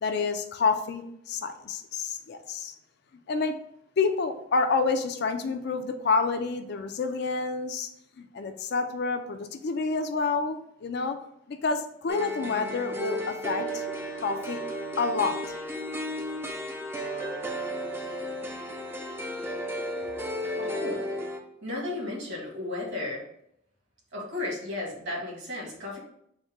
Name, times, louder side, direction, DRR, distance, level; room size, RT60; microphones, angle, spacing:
voice 1, 0.0-2.7 3.3-3.5 4.0-7.9 8.2-11.2 11.5-13.8 14.2-14.6 15.0-15.4, left 4 dB, 55° left, 7 dB, 0.4 m, -28 dB
sound 1, 12.1-21.4, equal, 10° right, 0.4 m, -34 dB
voice 2, 20.6-21.0 21.6-23.2 24.1-26.0, left 2 dB, 60° right, -2 dB, 1.5 m, -34 dB
4.2 x 2.2 x 4.6 m, 0.73 s
head